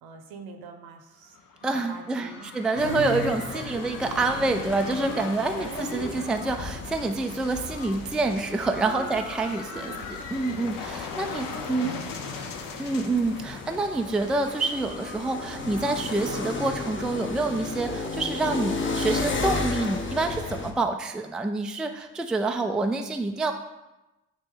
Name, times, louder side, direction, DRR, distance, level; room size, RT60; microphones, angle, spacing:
voice 1, 0.0-3.8 5.6-5.8 8.9-9.3 9.6-10.2 11.2-12.6 12.9-13.4, right 4 dB, 60° right, 5 dB, 1.0 m, -42 dB
sound 1, 1.2-18.9, left 5 dB, 55° left, 0.8 m, -41 dB
voice 2, 1.6-9.9 10.3-11.9 12.8-23.5, right 3 dB, ahead, 5 dB, 0.4 m, -27 dB
sound 2, 2.8-20.7, left 3 dB, 30° left, 0.9 m, -34 dB
8.7 x 3.0 x 3.8 m, 1.0 s
hypercardioid pair, 50°, 41 cm